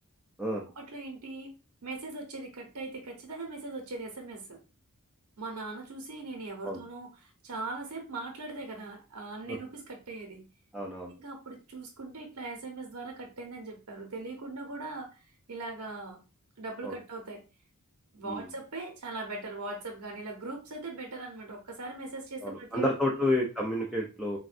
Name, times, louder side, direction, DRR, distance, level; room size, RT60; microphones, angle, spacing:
voice 1, 0.8-1.5 1.8-4.6 5.4-10.5 11.2-16.2 16.6-17.4 18.1-22.8 23.1-23.2, right 3 dB, 85° right, 1 dB, 0.7 m, -40 dB
voice 2, 10.7-11.1 16.8-16.9 18.3-18.4 22.4-24.4, left 1 dB, ahead, -3 dB, 0.4 m, -30 dB
3.5 x 2.1 x 2.4 m, 0.31 s
head